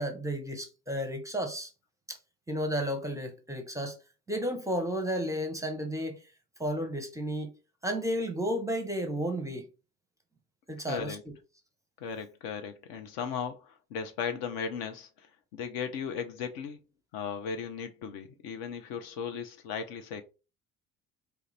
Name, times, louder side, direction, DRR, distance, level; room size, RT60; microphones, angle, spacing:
voice 1, 0.0-1.7 2.1-2.2 2.5-4.0 4.3-6.2 6.6-7.5 7.8-9.6 10.7-11.2, equal, 5° right, 0.7 m, -32 dB
voice 2, 10.9-11.2 12.0-16.8 17.1-20.2, left 6 dB, 50° left, 0.5 m, -36 dB
2.9 x 2.4 x 3.2 m
figure-of-eight pair, 55°, 46 cm